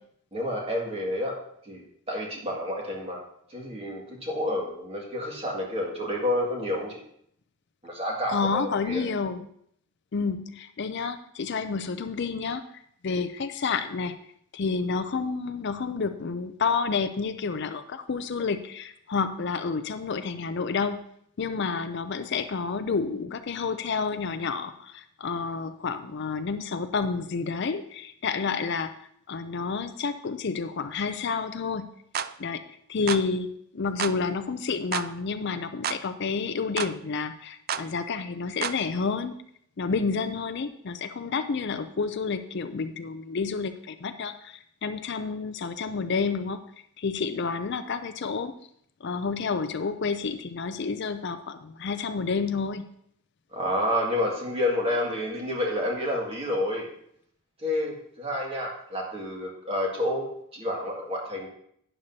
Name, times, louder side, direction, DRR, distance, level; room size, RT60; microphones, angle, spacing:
voice 1, 0.3-1.4 1.6-3.2 3.5-7.0 7.8-9.1 53.5-56.9 57.6-60.3 60.5-61.5, left 1 dB, 25° right, -2 dB, 2.0 m, -29 dB
voice 2, 8.3-9.4 10.1-12.6 13.0-14.1 14.5-21.0 21.4-28.9 29.3-31.9 32.4-32.6 32.9-39.3 39.8-46.6 47.0-48.5 49.0-52.8, left 5 dB, 50° left, 10 dB, 0.5 m, -29 dB
sound 1, 32.1-32.3 33.1-33.3 34.0-34.2 34.9-35.1 35.8-36.0 36.8-36.9 37.7-37.9 38.6-38.8, right 8 dB, 40° right, 0.3 m, -30 dB
12.0 x 9.9 x 2.8 m, 0.68 s
head